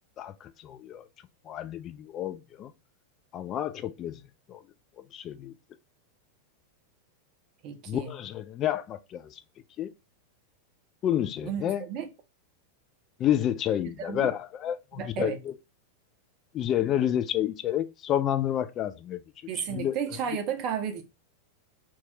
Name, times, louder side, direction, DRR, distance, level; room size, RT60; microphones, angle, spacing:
voice 1, 0.2-1.1 1.5-2.7 3.3-4.2 4.5-4.6 5.1-5.5 7.9-9.4 9.8-9.9 11.0-11.8 13.2-15.5 16.5-19.2 19.6-19.9, left 11 dB, 30° left, 0.3 m, -29 dB
voice 2, 7.6-8.1 11.4-12.1 14.0-14.3 14.9-15.4 19.5-21.0, right 8 dB, 40° right, 0.5 m, -33 dB
2.9 x 2.3 x 2.9 m
figure-of-eight pair, 90°, 0 cm